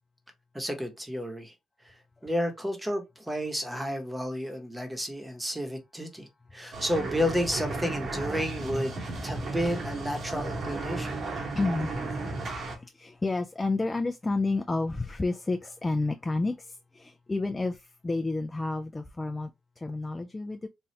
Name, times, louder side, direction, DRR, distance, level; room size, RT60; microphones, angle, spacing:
voice 1, 0.5-1.5 1.8-1.9 2.2-9.0 9.2-11.2, equal, 10° right, 0.9 m, -31 dB
sound 1, 6.7-12.8, right 2 dB, 50° right, 1.0 m, -34 dB
voice 2, 9.2-9.6 11.5-11.9 12.8-16.7 16.9-17.8 18.0-19.5 19.8-20.7, left 3 dB, 20° left, 0.3 m, -30 dB
3.1 x 2.3 x 2.8 m
cardioid pair, 90°, 0 cm